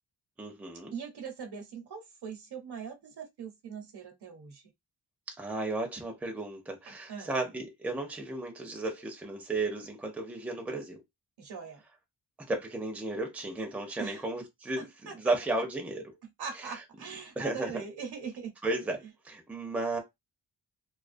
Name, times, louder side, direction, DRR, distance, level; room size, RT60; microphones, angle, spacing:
voice 1, 0.4-0.9 5.4-11.0 12.5-16.0 17.4-17.8 18.6-20.0, right 2 dB, 5° right, 0.5 m, -34 dB
voice 2, 0.9-4.6 6.9-7.3 11.4-11.8 14.0-14.2 14.8-15.2 16.2-18.5, right 6 dB, 65° right, 0.8 m, -41 dB
2.3 x 2.2 x 2.5 m
wide cardioid pair, 150°, 42 cm